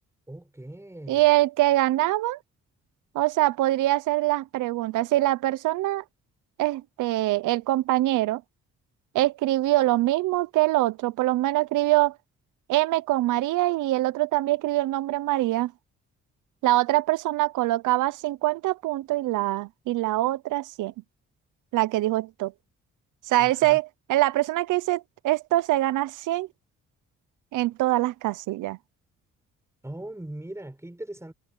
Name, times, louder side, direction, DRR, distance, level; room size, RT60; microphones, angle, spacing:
voice 1, 0.3-1.3 23.4-23.8 29.8-31.3, right 1 dB, 10° right, 6.1 m, -40 dB
voice 2, 1.1-2.4 3.1-6.0 6.6-8.4 9.1-12.2 12.7-15.7 16.6-20.9 21.7-22.5 23.3-26.5 27.5-28.8, right 17 dB, 85° right, 0.8 m, -24 dB
cardioid pair, 90°, 30 cm